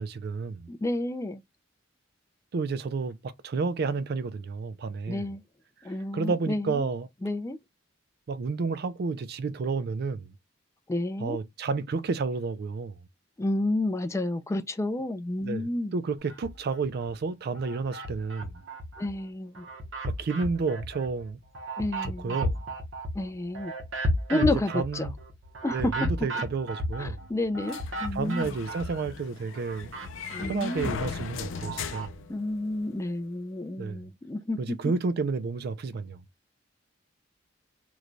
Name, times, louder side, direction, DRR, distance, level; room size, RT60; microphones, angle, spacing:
voice 1, 0.0-0.7 2.5-5.2 6.1-7.1 8.3-10.3 11.2-12.9 15.4-18.6 20.0-21.4 22.0-22.6 24.3-25.1 25.7-27.3 28.1-29.9 30.4-32.1 33.8-34.0 34.6-36.2, right 4 dB, 55° right, 0.4 m, -31 dB
voice 2, 0.7-1.4 5.1-5.4 5.8-6.9 7.2-7.6 10.9-11.4 13.4-15.9 19.0-19.6 21.8-22.3 23.1-23.7 24.3-25.1 25.6-25.9 27.0-28.6 30.3-30.9 32.3-34.8, left 2 dB, 15° left, 0.4 m, -30 dB
sound 1, 16.3-17.1 17.5-19.1 19.5-29.3 29.5-32.1, equal, 85° right, 0.9 m, -34 dB
sound 2, 27.7-32.9, left 6 dB, 90° left, 0.5 m, -39 dB
3.1 x 2.2 x 3.8 m
head